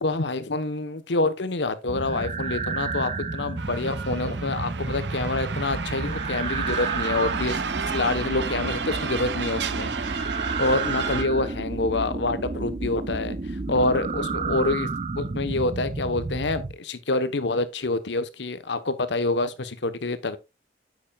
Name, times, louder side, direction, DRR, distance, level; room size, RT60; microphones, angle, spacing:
voice 1, 0.0-7.6 7.9-9.9 10.6-13.4 13.7-14.9 15.2-20.4, left 2 dB, 75° left, 1.0 m, -27 dB
sound 1, 1.9-16.7, right 3 dB, 35° right, 0.6 m, -31 dB
sound 2, 3.6-11.2, right 6 dB, 70° right, 0.8 m, -32 dB
8.6 x 8.4 x 2.3 m
head